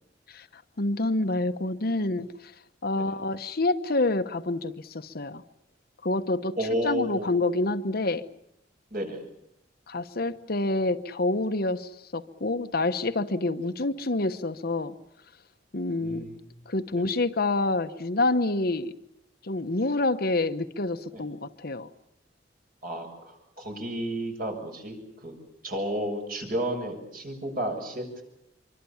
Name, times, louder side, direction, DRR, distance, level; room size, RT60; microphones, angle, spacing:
voice 1, 0.8-2.5 2.8-5.4 6.0-6.6 6.8-8.2 9.9-14.9 15.7-16.3 16.7-18.9 19.4-21.9, left 2 dB, 55° left, 9 dB, 1.1 m, -27 dB
voice 2, 6.6-7.3 8.9-9.2 15.9-16.4 16.9-17.0 21.1-21.2 22.8-25.0 25.2-25.3 25.6-28.2, right 1 dB, 50° right, 3 dB, 6.9 m, -32 dB
25.5 x 24.5 x 7.2 m, 0.76 s
head